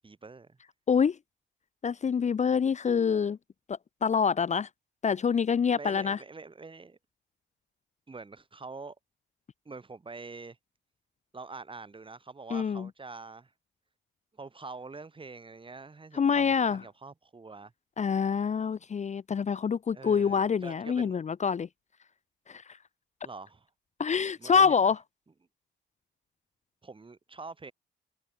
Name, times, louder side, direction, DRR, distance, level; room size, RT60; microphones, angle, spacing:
voice 1, 0.0-0.6 5.7-7.0 8.1-8.9 9.6-10.6 11.3-13.5 14.4-17.7 19.9-21.2 23.2-23.7 24.4-24.8 26.8-27.7, right 4 dB, 25° right, 4.7 m, -45 dB
voice 2, 1.8-3.4 3.7-4.7 5.0-6.2 12.5-12.9 16.1-16.8 18.0-21.7 22.5-22.6 24.0-25.0, left 6 dB, 35° left, 0.8 m, -26 dB
cardioid pair, 90°, 20 cm